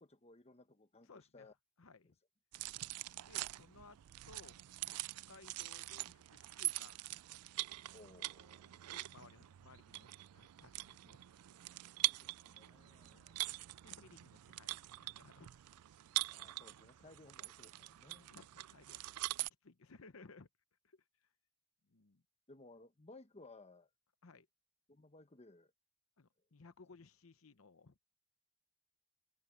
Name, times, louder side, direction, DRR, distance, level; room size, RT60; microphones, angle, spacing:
voice 1, 0.0-1.5 2.0-2.1 7.9-8.8 11.9-13.5 16.3-18.3 22.5-23.9 24.9-25.7, left 2 dB, 30° left, 1.1 m, -60 dB
voice 2, 1.1-1.5 1.8-2.2 3.2-4.0 4.3-4.6 4.9-5.0 5.3-7.0 8.6-11.2 13.0-13.2 13.8-15.5 18.2-20.5 20.8-21.3 21.9-22.2 24.2-24.5 26.2-28.0, left 3 dB, 65° left, 0.9 m, -60 dB
sound 1, 2.5-19.5, right 18 dB, 90° right, 0.4 m, -44 dB
head